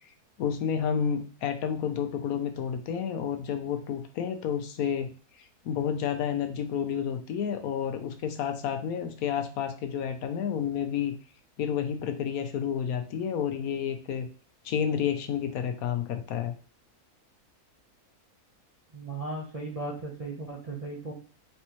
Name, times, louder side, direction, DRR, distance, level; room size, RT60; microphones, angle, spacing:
voice 1, 0.4-5.1 5.6-11.1 11.6-14.3 14.6-16.5, left 8 dB, 75° left, 7 dB, 1.1 m, -30 dB
voice 2, 18.9-21.1, right 2 dB, 30° right, -2 dB, 0.7 m, -36 dB
4.3 x 3.4 x 2.9 m, 0.39 s
omnidirectional pair, 1.6 m